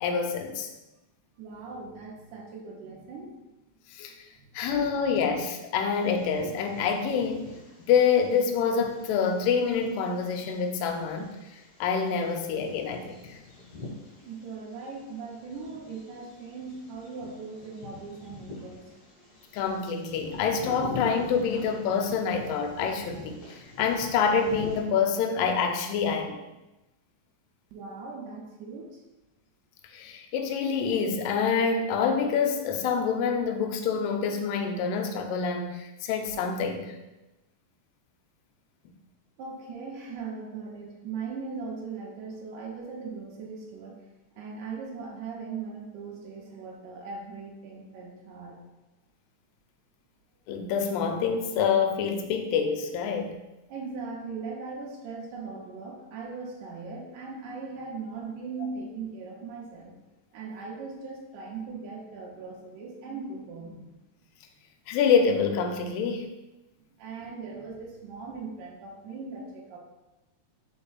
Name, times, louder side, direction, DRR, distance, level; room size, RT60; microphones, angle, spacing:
voice 1, 0.0-0.7 3.9-4.2 4.5-7.5 7.9-13.4 19.5-26.4 29.9-37.0 50.5-53.3 64.9-66.3, left 6 dB, 80° left, 5 dB, 2.1 m, -26 dB
voice 2, 1.4-3.5 4.4-4.9 14.3-18.9 27.7-29.0 39.4-44.0 44.4-48.6 53.7-59.9 60.3-64.0 67.0-69.8, right 4 dB, 75° right, -1 dB, 2.0 m, -39 dB
Bird vocalization bird call bird song, 5.9-24.8, left 2 dB, 55° left, 1.6 m, -44 dB
5.2 x 4.2 x 2.3 m, 1.0 s
omnidirectional pair, 4.0 m